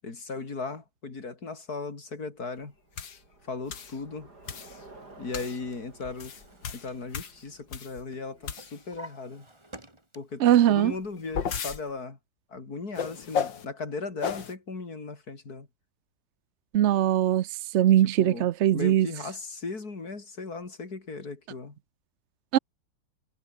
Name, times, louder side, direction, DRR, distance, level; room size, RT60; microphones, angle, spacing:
voice 1, 0.0-2.7 3.5-4.3 5.2-6.3 6.7-9.5 10.2-10.4 10.7-12.2 12.5-15.7 18.0-21.8, left 4 dB, 55° left, 4.1 m, -37 dB
Bicycle, 2.6-9.0, right 2 dB, 60° right, 6.6 m, -54 dB
sound 1, 3.0-3.2 3.7-4.0 4.5-4.8 5.3-5.6 6.0-8.0 8.4-9.0 10.9-11.8 13.0-13.6 14.2-14.5, left 7 dB, 85° left, 2.5 m, -34 dB
Drawer open or close, 5.4-7.8 8.1-10.5 10.9-11.6, right 1 dB, 15° right, 3.6 m, -51 dB
voice 2, 10.4-10.9 16.7-17.5 17.7-19.1 22.5-22.6, right 12 dB, 85° right, 0.6 m, -21 dB
omnidirectional pair, 2.0 m